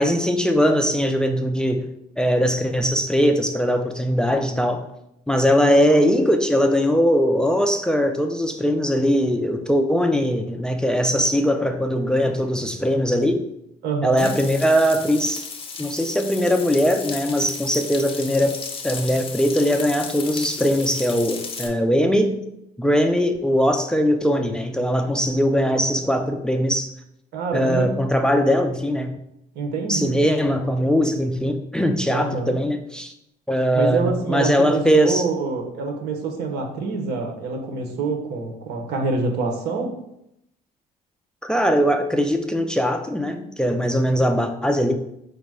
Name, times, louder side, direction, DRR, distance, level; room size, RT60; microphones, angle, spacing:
voice 1, 0.0-1.9 2.2-4.8 5.3-13.4 14.0-15.5 15.8-22.4 22.8-26.9 27.5-29.2 29.9-33.1 33.5-35.2 41.4-44.9, equal, 5° left, 5 dB, 0.4 m, -20 dB
voice 2, 5.6-6.0 13.8-14.3 27.3-27.9 29.5-30.1 32.1-32.6 33.7-39.9, right 4 dB, 75° right, 4 dB, 0.9 m, -26 dB
Frying (food), 14.2-21.7, left 5 dB, 35° left, 0.7 m, -34 dB
5.0 x 2.1 x 4.8 m, 0.79 s
cardioid pair, 110°, 17 cm